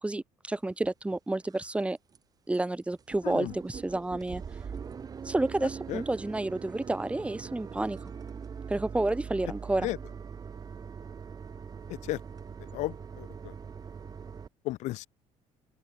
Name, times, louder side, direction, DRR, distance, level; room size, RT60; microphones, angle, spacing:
voice 1, 0.0-2.0 2.5-4.4 5.2-8.0 8.7-9.9, right 2 dB, 10° right, 5.9 m, -30 dB
sound 1, 0.8-0.9 1.4-1.8 2.1-2.2 2.5-2.7 2.9-14.5, right 6 dB, 30° right, 2.6 m, -42 dB
voice 2, 3.2-3.5 5.9-6.0 9.8-10.0 11.9-12.2 12.7-13.5 14.6-15.1, left 17 dB, 70° left, 1.6 m, -34 dB
open air
cardioid pair, 120°, 12 cm